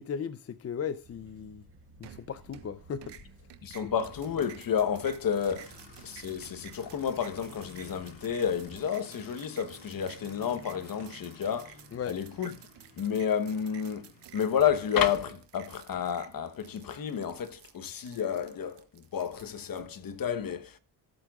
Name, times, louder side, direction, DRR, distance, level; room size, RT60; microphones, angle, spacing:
voice 1, 0.0-1.6 2.0-3.1 3.8-3.9 11.9-12.1, left 7 dB, 35° left, 0.6 m, -36 dB
sound 1, 1.0-8.8, right 1 dB, 30° right, 3.9 m, -56 dB
sound 2, 2.0-2.7 3.0-19.8, right 11 dB, 75° right, 1.3 m, -52 dB
voice 2, 3.6-11.8 12.1-12.5 13.0-20.8, left 8 dB, 55° left, 1.1 m, -31 dB
Aircraft, 4.0-15.2, left 3 dB, 90° left, 3.6 m, -55 dB
17.0 x 7.7 x 2.4 m
cardioid pair, 70°, 42 cm